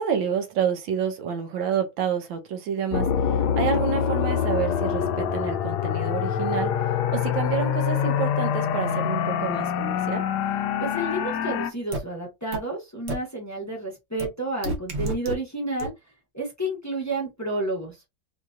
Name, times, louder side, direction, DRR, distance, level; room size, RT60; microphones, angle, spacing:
voice 1, 0.0-10.3, right 8 dB, 75° right, 1.4 m, -29 dB
sound 1, 2.9-11.7, left 8 dB, 75° left, 0.9 m, -25 dB
voice 2, 10.8-15.9 16.3-18.0, right 1 dB, 15° left, 0.5 m, -30 dB
sound 2, 11.9-12.0 12.5-12.6 13.1-13.2 14.2-14.3 14.6-15.3 15.8-15.9, right 2 dB, 50° right, 0.8 m, -28 dB
4.4 x 2.6 x 2.4 m
omnidirectional pair, 2.2 m